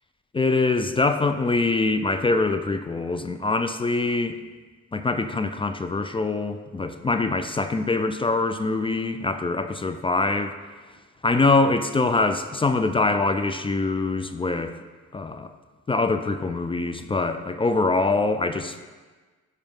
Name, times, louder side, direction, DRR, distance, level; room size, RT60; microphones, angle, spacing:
voice 1, 0.3-4.4 4.9-10.6 11.2-14.8 15.1-15.5 15.9-18.8, left 3 dB, 20° left, 9 dB, 0.4 m, -24 dB
12.0 x 4.9 x 3.6 m, 1.4 s
cardioid pair, 90°, 30 cm